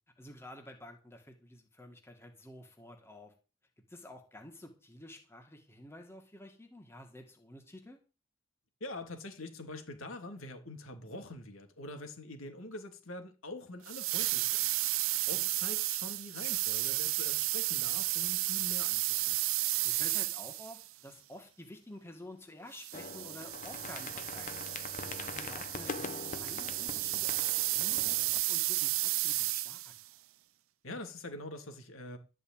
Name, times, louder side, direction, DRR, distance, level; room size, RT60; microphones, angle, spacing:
voice 1, 0.2-3.3 3.9-8.0 14.8-15.0 15.3-15.5 19.8-29.9, left 1 dB, 10° left, 2.0 m, -51 dB
voice 2, 8.8-14.7 15.3-19.4 30.8-32.2, left 1 dB, 85° left, 2.8 m, -44 dB
sound 1, 13.9-20.9 22.8-30.0, right 18 dB, 85° right, 0.5 m, -33 dB
sound 2, 22.9-28.4, left 4 dB, 40° left, 0.9 m, -43 dB
12.5 x 5.5 x 9.0 m
head